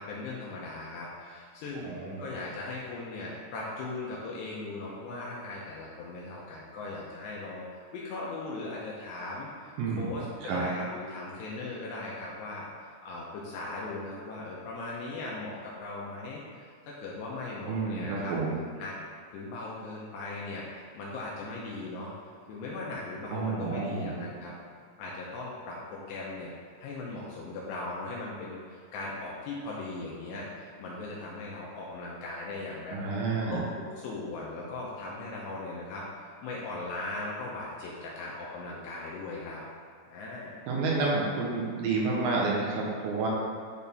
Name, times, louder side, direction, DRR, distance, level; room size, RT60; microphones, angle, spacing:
voice 1, 0.0-18.4 18.8-19.0 19.3-22.1 22.5-24.5 25.0-26.6 26.8-33.2 33.5-39.6 40.1-40.6, left 2 dB, 80° left, -5 dB, 2.6 m, -39 dB
voice 2, 1.8-2.3 9.8-10.2 10.5-10.6 17.7-18.6 23.3-24.2 32.9-33.6 40.7-43.3, right 3 dB, 80° right, -3 dB, 2.1 m, -30 dB
10.5 x 4.2 x 3.5 m, 2.2 s
omnidirectional pair, 5.7 m